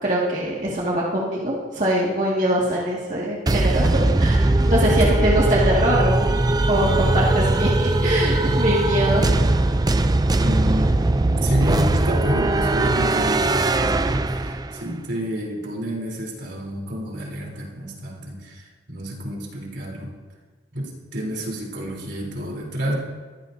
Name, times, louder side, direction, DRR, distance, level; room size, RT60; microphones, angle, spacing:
voice 1, 0.0-6.4 6.7-9.3, right 1 dB, 45° right, -5 dB, 2.1 m, -23 dB
sound 1, 3.5-14.9, right 2 dB, 20° right, 0.4 m, -20 dB
voice 2, 4.9-5.3 10.4-10.9 11.4-20.1 20.7-22.9, equal, 75° right, -2 dB, 3.7 m, -29 dB
22.0 x 15.0 x 2.8 m, 1.4 s
head